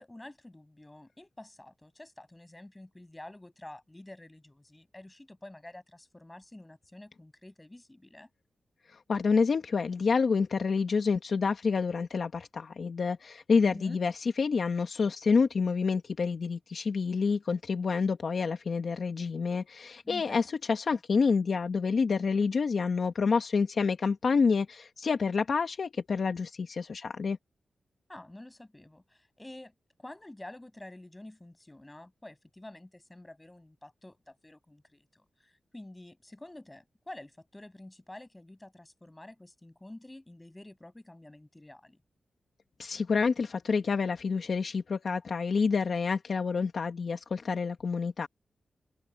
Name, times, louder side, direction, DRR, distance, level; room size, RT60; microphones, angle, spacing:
voice 1, 0.0-8.3 13.6-14.0 20.0-20.5 20.9-21.0 28.1-29.7 30.0-42.0, left 1 dB, 15° left, 6.7 m, -49 dB
voice 2, 8.9-27.4 42.8-48.3, left 5 dB, 55° left, 1.3 m, -28 dB
open air
wide cardioid pair, 125°, 0 cm